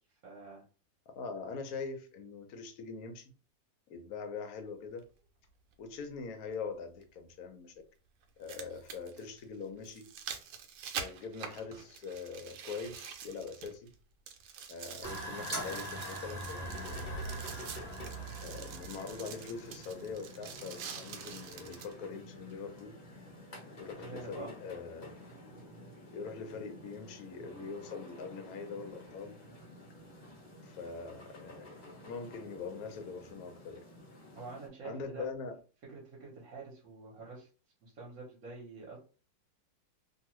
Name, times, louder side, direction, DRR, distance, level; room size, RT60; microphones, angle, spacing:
voice 1, 0.2-0.6 23.9-24.5 34.3-35.3 35.9-37.5 37.8-39.0, right 4 dB, 55° right, 1.1 m, -46 dB
voice 2, 1.1-3.3 3.9-5.1 5.8-7.7 8.4-10.1 11.0-13.9 14.7-17.2 18.4-23.0 23.8-25.1 26.1-29.4 30.6-31.7 32.0-33.8 34.8-35.6, left 5 dB, 70° left, 0.9 m, -43 dB
sound 1, 5.0-5.1 7.0-7.1 8.2-14.0 14.3-21.9 22.5-22.6, right 7 dB, 75° right, 1.2 m, -46 dB
sound 2, 15.0-34.7, left 1 dB, 50° left, 0.5 m, -51 dB
sound 3, 15.0-20.1, right 1 dB, 25° right, 1.3 m, -41 dB
2.9 x 2.3 x 3.0 m
omnidirectional pair, 2.0 m